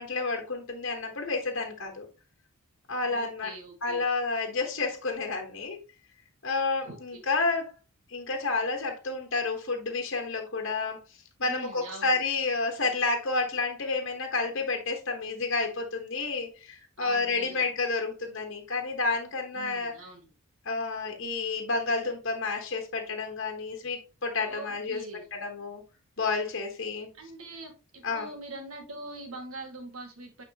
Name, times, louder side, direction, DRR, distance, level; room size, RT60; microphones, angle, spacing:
voice 1, 0.0-2.1 2.9-3.5 3.8-5.8 6.4-7.7 8.1-11.0 11.4-20.0 20.6-25.0 25.3-25.8 26.2-27.1 28.0-28.3, left 3 dB, 55° left, 1.2 m, -30 dB
voice 2, 3.0-4.1 6.8-7.2 11.4-12.2 17.0-17.7 19.5-20.3 24.4-25.3 27.2-30.4, right 2 dB, 75° right, 1.9 m, -43 dB
9.1 x 4.2 x 2.9 m
head